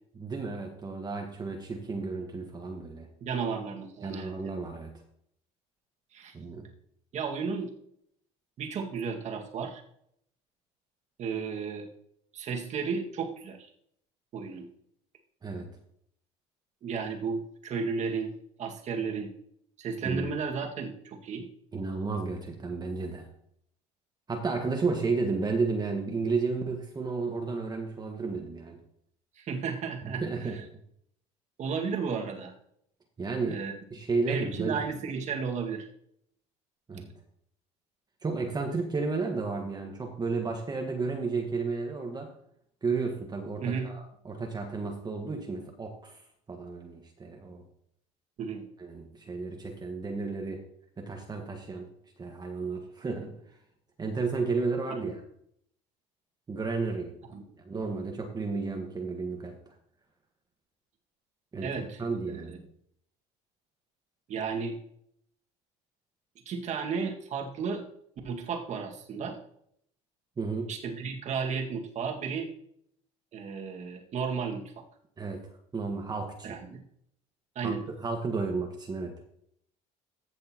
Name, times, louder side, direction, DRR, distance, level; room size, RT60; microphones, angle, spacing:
voice 1, 0.2-3.1 4.0-4.9 6.3-6.7 15.4-15.7 20.0-20.3 21.7-23.3 24.3-28.8 30.0-30.6 33.2-33.6 33.9-34.8 36.9-37.1 38.2-42.3 42.8-46.2 46.5-47.6 48.8-50.6 51.0-51.9 52.2-53.3 54.0-55.2 56.5-57.2 57.6-59.7 61.5-62.6 70.4-70.7 75.2-75.5 75.7-76.6 77.6-79.1, right 4 dB, 25° right, 2 dB, 1.6 m, -32 dB
voice 2, 3.2-4.5 6.1-6.3 7.1-7.7 8.6-9.8 11.2-11.9 12.3-13.7 14.3-14.7 16.8-18.3 18.6-19.3 19.8-21.5 29.4-30.5 31.6-32.5 33.5-33.7 34.3-35.9 43.6-43.9 48.4-48.6 54.9-55.1 57.3-57.4 61.6-62.0 62.3-62.6 64.3-64.8 66.5-67.8 68.2-69.4 70.7-72.5 73.3-74.7 76.4-76.8 77.6-77.8, right 5 dB, 50° right, 2 dB, 2.1 m, -33 dB
15.0 x 6.5 x 3.0 m, 0.70 s
supercardioid pair, 85°, 15 cm